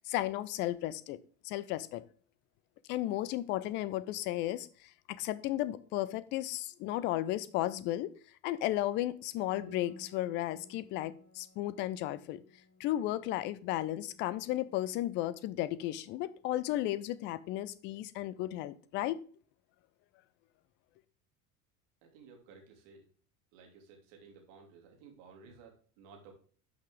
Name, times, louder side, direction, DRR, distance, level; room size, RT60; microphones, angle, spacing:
voice 1, 0.1-1.2 1.4-2.0 2.9-8.1 8.4-12.4 12.8-19.2, left 14 dB, 25° left, 18 dB, 0.4 m, -34 dB
Piano, 9.6-18.9, left 3 dB, 65° left, 2.0 m, -57 dB
voice 2, 22.0-23.1 23.5-26.3, right 5 dB, 50° right, 2 dB, 2.8 m, -56 dB
11.5 x 5.6 x 3.8 m, 0.42 s
figure-of-eight pair, 75°, 48 cm